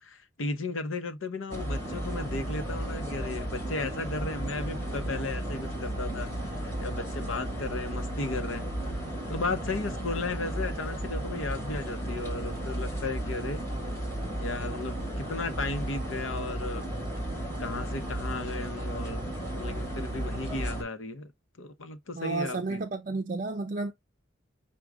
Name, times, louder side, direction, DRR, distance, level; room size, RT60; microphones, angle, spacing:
voice 1, 0.0-9.0 9.3-13.6 14.4-16.9 17.6-21.3 21.6-22.8, left 3 dB, 85° left, 0.8 m, -35 dB
sound 1, 1.5-20.8, right 1 dB, 15° left, 1.8 m, -34 dB
voice 2, 22.1-23.9, right 3 dB, 40° right, 0.5 m, -32 dB
6.1 x 2.3 x 3.5 m
head